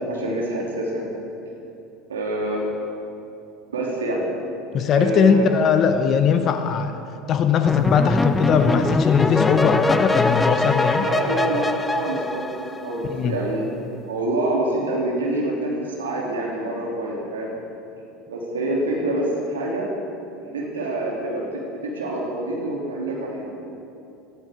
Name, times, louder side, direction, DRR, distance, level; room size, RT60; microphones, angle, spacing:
voice 1, 0.1-1.1 2.1-2.6 3.7-4.2 4.9-5.5 11.0-11.7 11.9-12.5 12.8-13.8 14.1-15.7 16.0-17.5 18.3-19.9 20.4-23.5, right 2 dB, 80° right, -3 dB, 3.0 m, -26 dB
voice 2, 4.7-7.0 7.3-11.1 13.1-13.4, left 7 dB, 40° left, 9 dB, 0.8 m, -20 dB
sound 1, 7.7-13.1, left 2 dB, 15° left, 0.6 m, -22 dB
18.5 x 14.0 x 3.7 m, 2.7 s
figure-of-eight pair, 75°, 0 cm